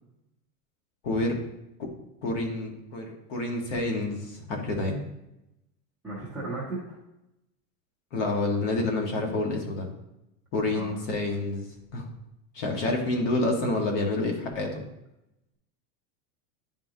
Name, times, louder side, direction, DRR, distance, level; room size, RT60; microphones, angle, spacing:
voice 1, 1.0-1.4 1.8-1.9 2.2-5.0 8.1-9.9 10.5-11.7 11.9-12.1 12.5-14.8, left 2 dB, 50° left, 2 dB, 1.4 m, -28 dB
voice 2, 6.0-7.0 10.7-11.0 12.6-12.9, right 2 dB, 5° right, -10 dB, 0.4 m, -36 dB
10.0 x 3.7 x 2.7 m, 0.89 s
supercardioid pair, 170°, 44 cm